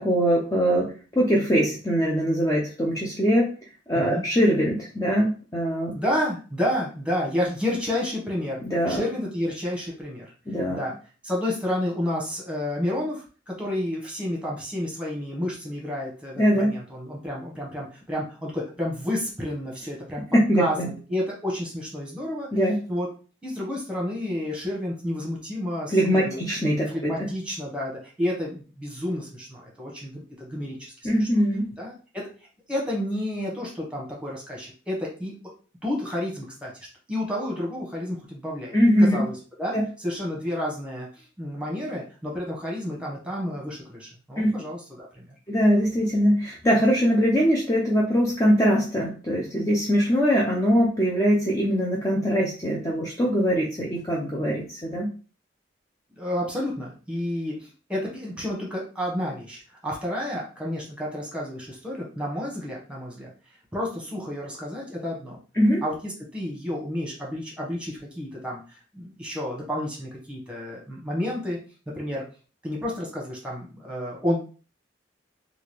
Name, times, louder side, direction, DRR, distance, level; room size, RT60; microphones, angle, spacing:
voice 1, 0.0-3.5 3.9-5.9 8.6-9.0 10.5-10.8 16.4-16.7 20.3-20.9 22.5-22.8 25.9-27.3 31.0-31.7 38.7-39.2 39.7-39.8 44.4-44.5 45.5-55.1 65.6-65.8, equal, 15° left, -3 dB, 0.5 m, -22 dB
voice 2, 5.9-10.3 10.7-10.9 11.2-20.2 20.6-22.5 22.9-23.1 23.4-26.4 26.9-30.9 31.2-31.3 31.8-32.3 32.7-35.3 35.8-36.7 37.1-45.3 56.2-63.3 63.7-65.4 65.8-71.6 71.9-72.2 72.6-74.4, left 1 dB, 5° right, -3 dB, 1.2 m, -30 dB
3.8 x 2.4 x 3.2 m, 0.37 s
head